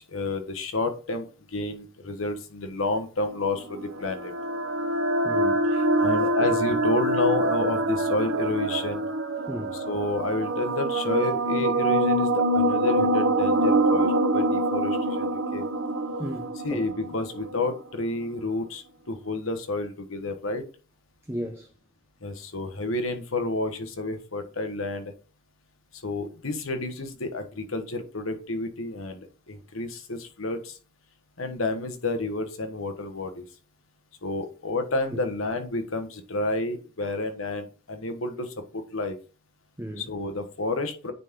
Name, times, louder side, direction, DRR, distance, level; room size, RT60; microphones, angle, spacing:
voice 1, 0.0-4.3 5.7-9.0 9.7-15.7 16.6-20.6 22.2-25.1 25.9-30.8 31.4-33.4 34.2-39.2 40.0-41.1, left 2 dB, 85° left, 1.3 m, -30 dB
sound 1, 3.5-17.7, right 1 dB, 75° right, 0.9 m, -25 dB
voice 2, 5.2-5.6 9.5-9.8 16.2-16.8 21.3-21.7 35.1-35.2 37.0-37.1 39.8-40.1, equal, 10° right, 0.6 m, -35 dB
9.3 x 4.2 x 3.7 m
head